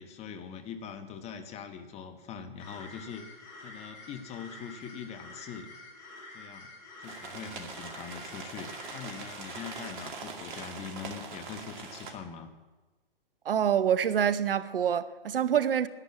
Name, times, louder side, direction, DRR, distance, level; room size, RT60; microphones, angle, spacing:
voice 1, 0.0-3.2 3.6-5.7 6.3-6.7 7.0-12.5, left 7 dB, 20° left, 1.2 m, -42 dB
sound 1, 2.6-9.9, left 2 dB, 50° left, 4.3 m, -48 dB
sound 2, 7.0-12.1, right 4 dB, 55° right, 2.5 m, -42 dB
voice 2, 13.5-15.9, right 9 dB, 70° right, 0.8 m, -26 dB
11.0 x 10.5 x 8.4 m
figure-of-eight pair, 120°, 30 cm